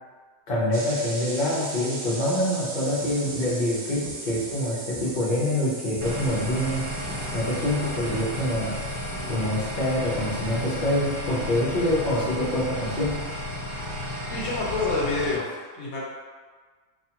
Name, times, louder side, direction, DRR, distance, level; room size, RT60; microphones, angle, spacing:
voice 1, 0.5-6.8 7.3-8.8 9.3-13.1, left 1 dB, 50° left, -7 dB, 0.9 m, -26 dB
sound 1, 0.7-14.3, right 2 dB, 55° right, 0.5 m, -40 dB
sound 2, 2.7-10.7, equal, 5° left, 0.5 m, -43 dB
sound 3, 6.0-15.3, left 1 dB, 15° right, 1.0 m, -33 dB
voice 2, 14.3-15.4 15.7-16.0, left 3 dB, 85° left, -5 dB, 0.9 m, -27 dB
2.4 x 2.4 x 2.8 m, 1.5 s
omnidirectional pair, 1.2 m